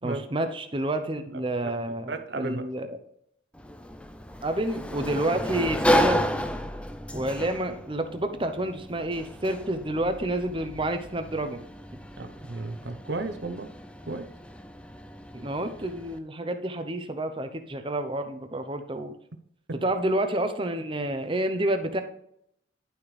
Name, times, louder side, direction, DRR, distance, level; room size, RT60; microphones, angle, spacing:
voice 1, 0.0-2.9 4.4-6.2 7.1-11.6 11.9-12.0 15.3-19.1 19.8-22.0, right 1 dB, 25° right, 8 dB, 0.7 m, -29 dB
voice 2, 1.3-1.7 2.1-2.6 12.2-13.7 14.1-14.3 19.7-19.8, right 2 dB, 60° right, 8 dB, 0.8 m, -34 dB
Sliding door, 3.5-16.2, equal, 5° left, 0.4 m, -32 dB
11.0 x 6.1 x 3.3 m, 0.73 s
head